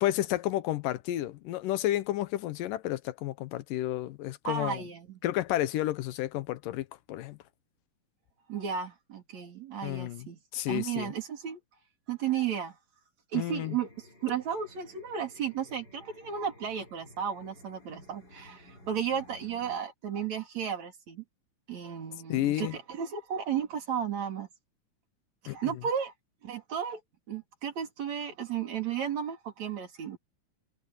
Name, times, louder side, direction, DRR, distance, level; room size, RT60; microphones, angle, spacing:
voice 1, 0.0-4.8 5.2-7.4 9.8-10.3 10.5-11.1 13.3-13.8 22.3-22.8 25.5-25.7, left 14 dB, 85° left, 2.5 m, -31 dB
voice 2, 4.5-5.2 8.5-10.4 10.7-11.6 12.1-12.8 13.3-21.2 21.7-24.5 25.4-26.1 26.4-27.0 27.3-30.2, right 8 dB, 55° right, 4.2 m, -34 dB
sound 1, 13.3-19.8, left 1 dB, 30° left, 6.9 m, -55 dB
omnidirectional pair, 3.7 m